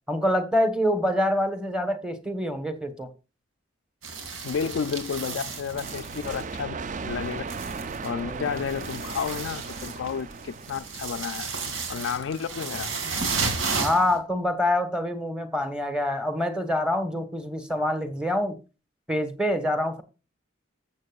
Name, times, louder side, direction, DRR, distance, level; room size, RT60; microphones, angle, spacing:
voice 1, 0.1-3.1 8.2-8.6 13.8-18.6 19.1-20.0, left 1 dB, 5° right, 1.2 m, -26 dB
sound 1, 4.0-6.8 7.0-14.2, right 4 dB, 85° right, 2.3 m, -33 dB
voice 2, 4.4-6.8 7.0-7.4 8.0-11.5 11.9-12.9, left 6 dB, 65° left, 0.4 m, -31 dB
sound 2, 5.7-11.3, right 4 dB, 40° right, 0.4 m, -37 dB
14.0 x 7.4 x 2.4 m
head